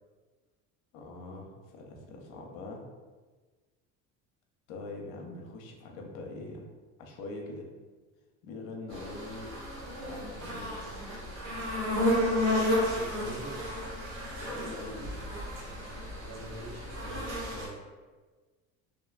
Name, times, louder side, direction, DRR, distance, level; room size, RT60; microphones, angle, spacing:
voice 1, 0.9-2.8 4.7-6.6 7.0-7.7 8.4-9.5 10.0-10.8 14.5-15.1, left 2 dB, 70° left, 1 dB, 0.6 m, -43 dB
sound 1, 8.9-17.7, left 1 dB, 85° right, 1.4 m, -32 dB
voice 2, 12.7-13.6 16.2-17.8, right 1 dB, 55° right, -10 dB, 1.5 m, -45 dB
2.5 x 2.2 x 2.4 m, 1.3 s
cardioid pair, 145°, 34 cm